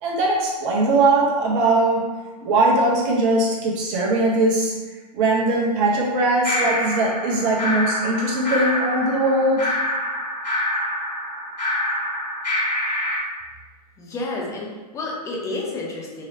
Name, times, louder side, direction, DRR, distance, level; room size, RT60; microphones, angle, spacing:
voice 1, 0.0-2.0 2.4-4.7 5.1-9.7, right 2 dB, 35° right, -3 dB, 0.8 m, -20 dB
sound 1, 6.4-13.2, left 1 dB, 85° left, 1.0 m, -26 dB
voice 2, 14.0-16.2, left 2 dB, 15° left, -2 dB, 0.6 m, -30 dB
3.1 x 2.9 x 2.6 m, 1.3 s
figure-of-eight pair, 110°, 21 cm